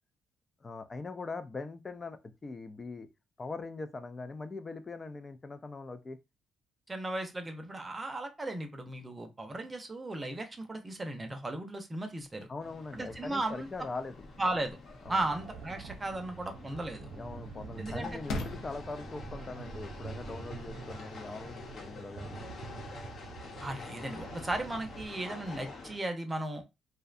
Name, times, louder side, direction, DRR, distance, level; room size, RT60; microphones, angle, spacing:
voice 1, 0.6-3.1 3.4-6.2 12.5-14.2 15.0-15.2 17.1-22.4, left 3 dB, 30° left, 0.4 m, -41 dB
voice 2, 6.9-12.5 12.9-13.7 14.4-14.8 15.1-17.1 17.8-18.4 23.6-26.6, right 2 dB, 20° right, 0.6 m, -36 dB
sound 1, 12.2-23.2, left 2 dB, 80° left, 0.5 m, -47 dB
sound 2, 12.6-26.0, left 4 dB, 55° left, 0.8 m, -48 dB
sound 3, 15.0-25.1, right 6 dB, 75° right, 0.4 m, -47 dB
2.6 x 2.1 x 2.5 m
cardioid pair, 90°, 0 cm